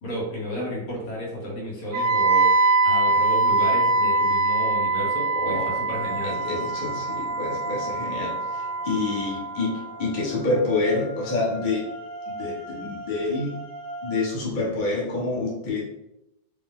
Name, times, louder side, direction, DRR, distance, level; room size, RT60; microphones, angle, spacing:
voice 1, 0.0-2.5 2.8-6.4, equal, 60° left, -5 dB, 1.8 m, -32 dB
Wind instrument woodwind instrument, 1.9-9.9, right 3 dB, 75° right, 1.2 m, -23 dB
voice 2, 5.3-5.7 6.2-11.9 12.3-13.6 14.0-15.8, left 3 dB, 30° left, -6 dB, 1.0 m, -27 dB
sound 1, 5.9-14.3, right 1 dB, 60° right, 0.9 m, -39 dB
5.1 x 2.2 x 3.7 m, 0.91 s
omnidirectional pair, 2.0 m